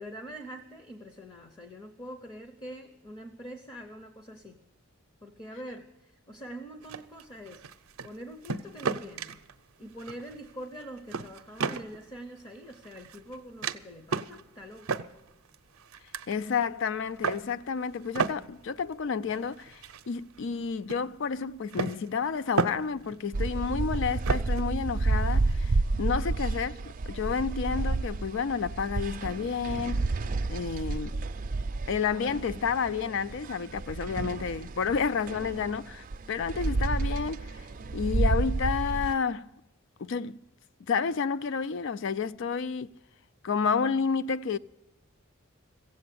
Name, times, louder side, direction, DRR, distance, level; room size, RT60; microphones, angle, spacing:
voice 1, 0.0-4.6 5.2-9.4 9.8-15.0, equal, 20° left, 0.7 m, -44 dB
sound 1, 6.8-8.1 8.4-9.5 10.0-10.5 10.8-12.0 12.6-13.4 13.6-13.8 14.1-14.4 14.8-16.4 16.9-17.5 17.9-20.6 20.9-21.0 21.7-23.2 23.5-25.7, right 5 dB, 85° right, 0.6 m, -34 dB
voice 2, 16.3-26.8 27.1-30.0 30.5-31.2 31.9-37.7 37.9-39.5 40.0-40.4 40.9-42.9 43.4-44.6, left 5 dB, 60° left, 0.4 m, -30 dB
sound 2, 23.3-39.1, right 3 dB, 40° right, 0.4 m, -30 dB
16.0 x 7.8 x 8.4 m
head